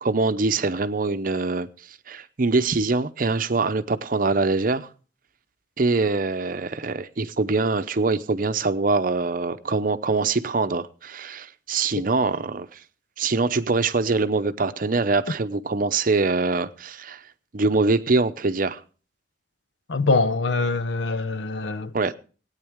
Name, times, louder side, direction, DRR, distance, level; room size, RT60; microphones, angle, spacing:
voice 1, 0.0-1.7 2.1-4.9 5.8-12.8 13.2-17.2 17.5-18.8 21.9-22.1, right 3 dB, 50° right, 0.6 m, -23 dB
voice 2, 19.9-21.9, left 3 dB, 75° left, 0.7 m, -23 dB
18.5 x 9.0 x 3.5 m
head